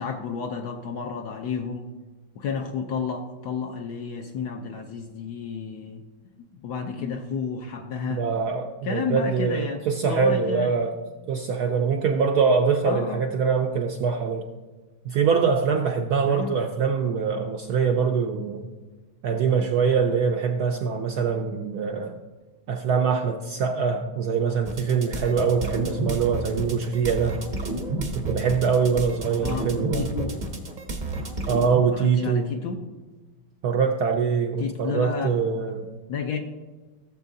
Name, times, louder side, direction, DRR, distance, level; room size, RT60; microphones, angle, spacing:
voice 1, 0.0-1.9 2.4-6.0 6.4-8.2 8.8-10.7 12.8-13.2 16.3-16.6 29.4-30.3 31.9-32.9 34.6-35.6 36.1-36.4, left 5 dB, 70° left, 3 dB, 1.0 m, -31 dB
voice 2, 8.1-10.9 11.3-14.4 15.0-18.7 19.2-22.2 22.7-27.4 28.1-30.1 31.5-32.5 33.6-35.9, right 6 dB, 75° right, 3 dB, 0.9 m, -23 dB
sound 1, 24.7-31.8, right 2 dB, 45° right, 0.6 m, -31 dB
15.5 x 7.3 x 2.7 m, 1.3 s
omnidirectional pair, 2.2 m